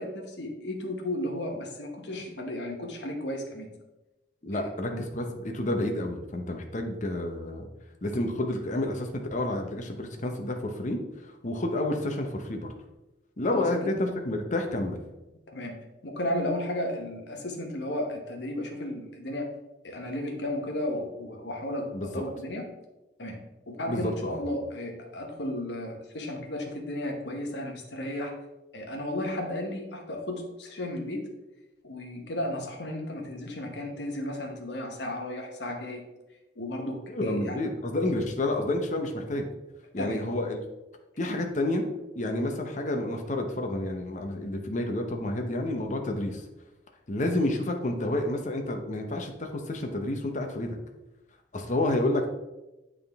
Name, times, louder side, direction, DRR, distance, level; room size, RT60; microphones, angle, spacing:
voice 1, 0.0-3.7 4.5-5.0 13.5-14.1 15.5-15.8 16.0-19.5 19.8-22.7 23.2-28.3 28.7-31.3 31.8-36.1 36.6-37.6 40.0-40.2, left 1 dB, 65° left, 2 dB, 1.1 m, -34 dB
voice 2, 4.4-7.7 8.0-11.0 11.4-12.7 13.4-15.0 21.9-22.2 23.9-24.4 37.1-39.5 39.9-40.6 41.2-41.8 42.2-46.4 47.1-50.8 51.5-52.3, left 1 dB, 40° left, 4 dB, 0.8 m, -29 dB
8.9 x 3.7 x 3.5 m, 1.0 s
head